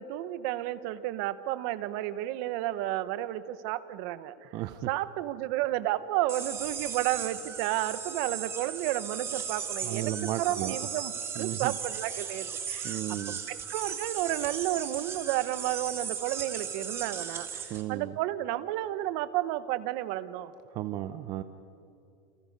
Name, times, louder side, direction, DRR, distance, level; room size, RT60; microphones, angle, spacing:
voice 1, 0.0-4.6 4.9-13.0 13.3-20.5, right 14 dB, 55° right, 14 dB, 1.1 m, -32 dB
voice 2, 4.5-4.9 9.8-10.8 11.4-11.7 12.8-13.4 17.7-18.1 20.7-21.4, right 13 dB, 35° right, 10 dB, 0.7 m, -34 dB
sound 1, 6.3-17.8, right 7 dB, 20° right, 2.1 m, -37 dB
29.5 x 29.0 x 5.4 m, 2.7 s
supercardioid pair, 160°, 12 cm